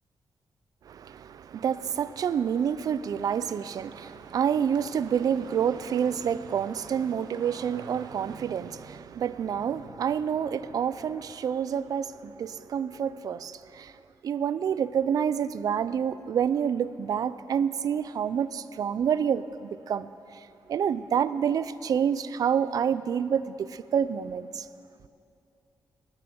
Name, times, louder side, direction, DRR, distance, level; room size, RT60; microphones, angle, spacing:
voice 1, 0.9-13.9 14.2-24.7, right 8 dB, 60° right, 0.4 m, -28 dB
sound 1, 3.1-8.4, right 5 dB, 75° right, 0.8 m, -48 dB
19.5 x 7.0 x 6.9 m
wide cardioid pair, 170°, 7 cm